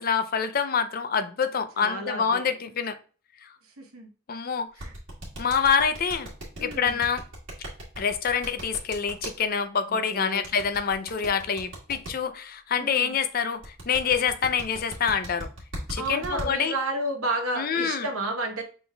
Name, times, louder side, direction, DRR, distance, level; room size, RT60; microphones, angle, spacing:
voice 1, 0.0-2.9 3.4-3.5 4.3-4.7 5.4-6.3 6.6-7.2 8.0-15.5 15.9-16.8 17.6-18.1, left 6 dB, 45° left, 10 dB, 0.4 m, -26 dB
voice 2, 1.8-2.5 3.8-4.1 4.8-4.9 6.6-7.0 9.9-10.4 12.8-13.1 16.0-18.6, right 1 dB, 85° right, 4 dB, 1.0 m, -31 dB
sound 1, 4.8-9.3 10.4-12.1 13.6-16.5, right 1 dB, 65° right, 1.9 m, -37 dB
5.8 x 3.9 x 2.2 m, 0.37 s
head